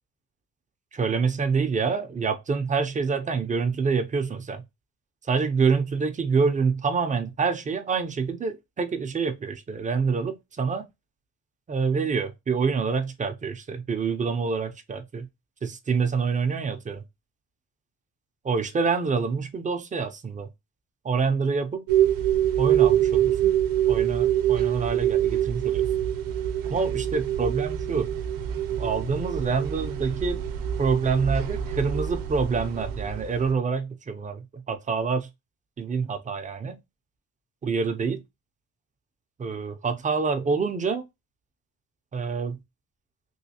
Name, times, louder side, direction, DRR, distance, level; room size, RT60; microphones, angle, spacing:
voice 1, 0.9-4.6 5.2-10.9 11.7-15.3 15.6-17.0 18.4-20.5 21.0-21.9 22.6-23.6 23.8-25.9 26.6-28.1 28.7-30.4 30.8-35.3 35.8-36.8 37.6-38.2 39.4-41.0 42.1-42.6, right 5 dB, 20° right, 0.4 m, -26 dB
sound 1, 21.9-33.5, right 11 dB, 65° right, 0.6 m, -25 dB
3.1 x 3.1 x 2.7 m
cardioid pair, 150°, 36 cm